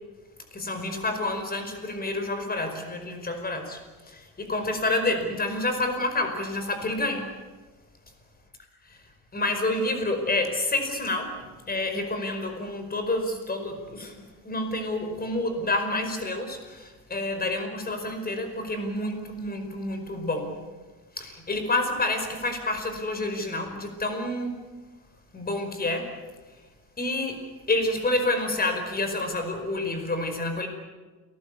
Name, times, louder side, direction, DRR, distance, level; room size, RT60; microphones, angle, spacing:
voice 1, 0.5-7.3 9.3-11.3 11.7-20.6 21.1-24.6 25.3-26.1 27.0-27.4 27.7-30.7, left 2 dB, 25° left, 6 dB, 5.1 m, -28 dB
29.0 x 19.5 x 8.5 m, 1.3 s
cardioid pair, 135°, 36 cm